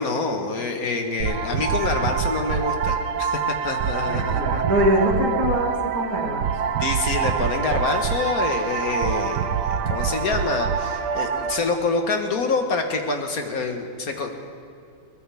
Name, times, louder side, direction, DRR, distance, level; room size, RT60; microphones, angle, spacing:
voice 1, 0.0-4.6 6.8-9.4 9.9-14.4, left 3 dB, 60° left, 4 dB, 1.8 m, -26 dB
sound 1, 1.2-11.6, right 7 dB, 80° right, 1.4 m, -25 dB
voice 2, 4.0-6.5, equal, 60° right, -2 dB, 3.0 m, -23 dB
22.0 x 19.0 x 3.5 m, 2.6 s
omnidirectional pair, 1.8 m